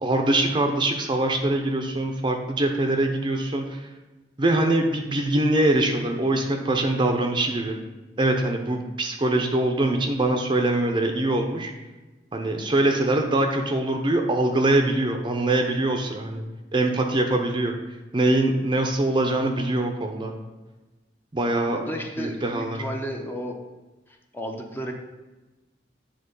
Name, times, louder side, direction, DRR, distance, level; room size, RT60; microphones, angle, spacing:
voice 1, 0.0-3.8 4.4-7.8 8.2-11.7 12.3-16.4 16.7-17.7 18.1-20.3 21.3-21.8 22.2-22.8, right 2 dB, 25° right, 4 dB, 0.6 m, -23 dB
voice 2, 21.7-23.6 24.1-24.9, equal, 10° left, 2 dB, 0.7 m, -33 dB
8.9 x 3.7 x 5.3 m, 1.1 s
head